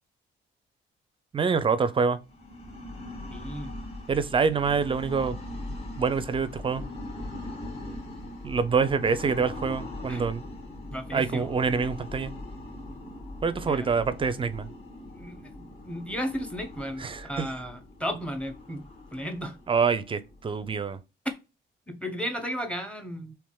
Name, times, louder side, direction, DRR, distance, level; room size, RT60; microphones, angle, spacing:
voice 1, 1.3-2.2 4.1-5.4 6.0-6.8 8.4-10.4 11.1-12.3 13.4-14.7 17.0-17.5 19.7-21.0, right 5 dB, 25° right, 0.4 m, -26 dB
sound 1, 2.2-20.9, left 1 dB, 30° left, 1.3 m, -41 dB
voice 2, 3.3-3.7 10.1-10.2 10.9-11.8 13.7-13.9 15.1-18.8 19.1-19.6 21.9-23.4, equal, 5° left, 0.8 m, -35 dB
3.4 x 2.9 x 2.2 m
cardioid pair, 90°, 20 cm